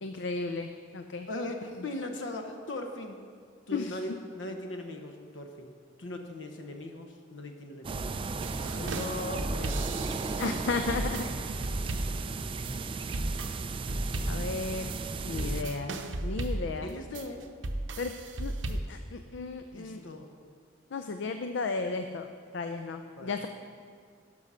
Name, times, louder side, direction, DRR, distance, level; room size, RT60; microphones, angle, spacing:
voice 1, 0.0-1.3 3.7-4.0 10.4-11.3 14.3-14.9 15.2-15.9 16.2-16.9 18.0-18.1 18.4-20.0 20.9-22.3 22.5-23.5, left 4 dB, 70° left, 7 dB, 0.5 m, -34 dB
voice 2, 1.3-3.2 3.7-5.7 6.0-8.1 8.6-10.4 15.2-15.9 16.7-17.4 19.7-20.3 23.2-23.5, left 1 dB, 90° left, 4 dB, 0.9 m, -39 dB
sound 1, 7.8-15.6, right 3 dB, 30° right, 0.4 m, -35 dB
sound 2, 8.4-18.8, right 1 dB, 90° right, 0.7 m, -35 dB
11.0 x 6.3 x 5.6 m, 2.1 s
head